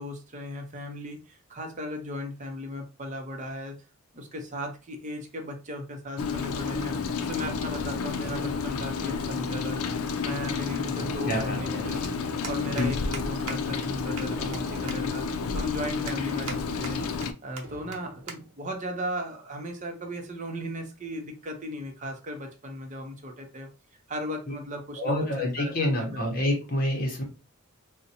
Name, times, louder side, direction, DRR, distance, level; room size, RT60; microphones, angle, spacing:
voice 1, 0.0-3.8 4.1-9.8 10.2-12.1 12.5-15.2 15.5-17.0 17.4-23.7 24.1-26.5, equal, 35° right, 4 dB, 0.6 m, -36 dB
Rain, 6.2-17.3, left 5 dB, 80° left, 0.4 m, -31 dB
sound 1, 11.0-12.9 14.2-15.4 17.6-18.6, right 2 dB, 60° right, 0.9 m, -44 dB
voice 2, 11.3-11.8 12.8-12.9 24.5-24.6 25.0-27.2, left 1 dB, 40° left, 0 dB, 0.7 m, -27 dB
sound 2, 12.0-12.1 12.4-12.9 13.1-13.2 13.5-13.6 13.8-13.9 14.2-14.6 14.9-15.0 15.4-15.5 16.1-16.6 16.8-17.3 17.6-17.7 17.9-18.0 18.3-18.4 18.7-18.9 19.7-20.0, right 4 dB, 85° right, 0.7 m, -38 dB
3.9 x 2.1 x 2.7 m, 0.32 s
head